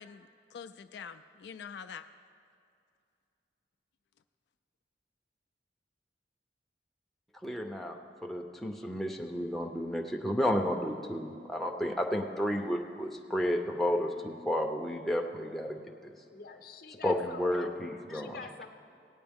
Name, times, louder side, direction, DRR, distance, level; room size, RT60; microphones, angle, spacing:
voice 1, 0.0-2.1, left 7 dB, 75° left, 9 dB, 0.3 m, -45 dB
voice 2, 7.4-8.0 8.2-16.1 17.0-18.4, equal, ahead, 1 dB, 0.5 m, -32 dB
voice 3, 16.3-17.8 18.1-18.7, left 4 dB, 55° left, 6 dB, 0.7 m, -46 dB
17.0 x 9.4 x 3.5 m, 2.4 s
head